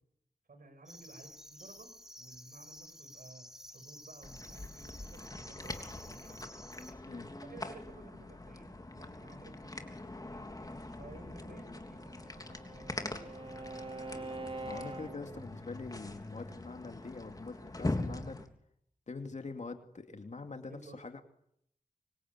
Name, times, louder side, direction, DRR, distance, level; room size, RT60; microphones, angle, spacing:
voice 1, 0.5-1.9 2.2-6.6 7.4-10.5 10.9-14.3 20.7-21.0, right 2 dB, 80° right, 9 dB, 6.6 m, -55 dB
sound 1, 0.9-6.9, equal, 5° right, 3.3 m, -52 dB
sound 2, 4.2-18.5, left 2 dB, 25° left, 3.3 m, -43 dB
Bowed string instrument, 11.9-15.5, right 2 dB, 40° right, 2.4 m, -44 dB
voice 2, 14.6-18.4 19.1-21.2, left 3 dB, 55° left, 6 dB, 2.5 m, -44 dB
25.5 x 24.0 x 9.7 m, 0.74 s
wide cardioid pair, 95°, 14 cm